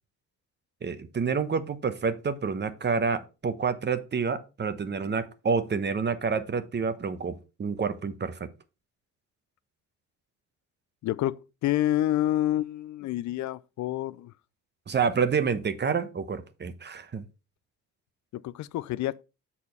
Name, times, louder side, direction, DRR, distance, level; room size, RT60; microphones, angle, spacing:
voice 1, 0.8-8.5 14.9-17.2, right 5 dB, 35° right, 1.0 m, -28 dB
voice 2, 11.0-14.3 18.3-19.2, left 14 dB, 70° left, 0.4 m, -28 dB
6.7 x 4.2 x 5.4 m
cardioid pair, 90°, 30 cm